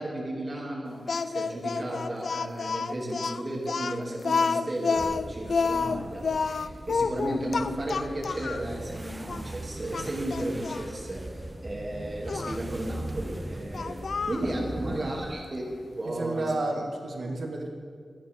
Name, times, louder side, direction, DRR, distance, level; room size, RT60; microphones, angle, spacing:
voice 1, 0.0-11.3 11.6-14.0 14.2-15.6 16.0-16.5, right 1 dB, 30° right, -2 dB, 3.0 m, -34 dB
Speech, 1.1-8.7 9.3-9.4 9.9-10.9 12.3-12.6 13.7-14.5, left 5 dB, 65° left, 0.4 m, -29 dB
sound 1, 5.0-15.4, right 1 dB, 15° right, 0.6 m, -40 dB
voice 2, 14.4-15.1 16.0-17.7, right 2 dB, 70° right, 1 dB, 2.0 m, -32 dB
18.0 x 13.5 x 3.8 m, 2.1 s
wide cardioid pair, 145°, 0 cm